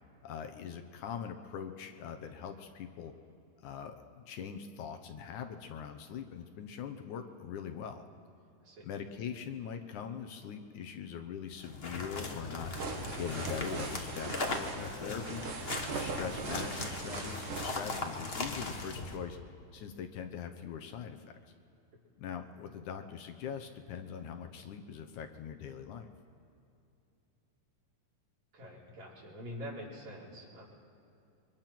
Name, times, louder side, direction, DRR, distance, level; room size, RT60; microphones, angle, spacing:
voice 1, 0.2-3.1 3.6-8.0 8.8-12.7 13.2-15.5 15.9-19.4 19.7-21.3 22.2-26.1, left 7 dB, 70° left, 6 dB, 2.4 m, -42 dB
sound 1, 11.5-19.2, left 3 dB, 50° left, 0.7 m, -39 dB
sound 2, 12.6-18.4, right 4 dB, 75° right, 3.5 m, -41 dB
voice 2, 28.5-30.6, equal, 55° right, -5 dB, 5.8 m, -45 dB
28.0 x 24.0 x 6.0 m, 2.7 s
omnidirectional pair, 3.7 m